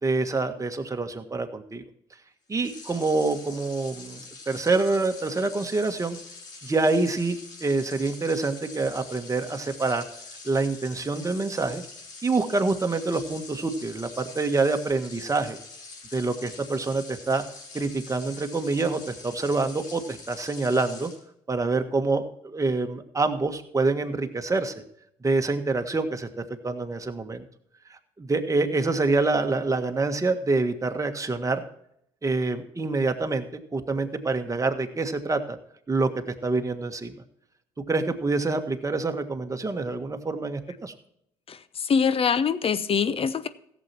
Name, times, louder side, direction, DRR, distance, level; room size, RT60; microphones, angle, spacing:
voice 1, 0.0-1.8 2.5-6.2 6.6-10.0 10.4-11.8 12.2-15.6 16.1-17.4 17.7-21.1 21.5-24.8 25.2-26.3 26.6-27.4 28.2-31.6 32.2-35.6 35.9-36.1 36.4-37.1 37.9-40.9, right 3 dB, 25° right, 1.6 m, -26 dB
sound 1, 2.6-21.2, left 3 dB, 70° left, 5.6 m, -44 dB
voice 2, 41.5-43.5, left 6 dB, 40° left, 0.9 m, -24 dB
15.5 x 7.6 x 4.4 m
hypercardioid pair, 55°, 14 cm